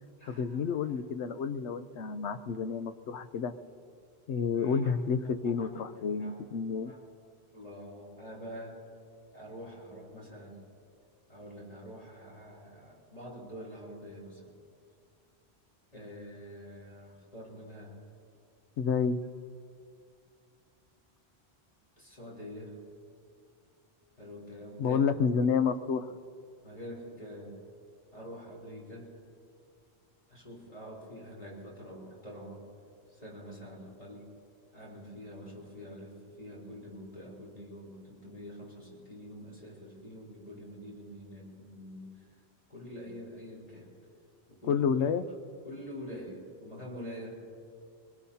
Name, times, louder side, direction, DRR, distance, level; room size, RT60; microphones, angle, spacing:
voice 1, 0.3-3.5 4.3-6.9 18.8-19.2 24.8-26.2 44.7-45.3, left 6 dB, 85° left, 10 dB, 1.0 m, -30 dB
voice 2, 4.6-4.9 5.6-5.7 6.2-6.4 6.7-7.0 7.5-8.8 9.3-10.6 11.3-14.5 15.9-17.9 22.0-22.8 24.2-25.1 26.6-27.6 28.1-29.1 30.3-32.7 33.1-34.3 34.7-42.1 42.7-43.9 44.5-44.8 45.6-47.4, equal, 35° left, -4 dB, 3.9 m, -46 dB
23.0 x 21.0 x 2.8 m, 2.3 s
omnidirectional pair, 1.1 m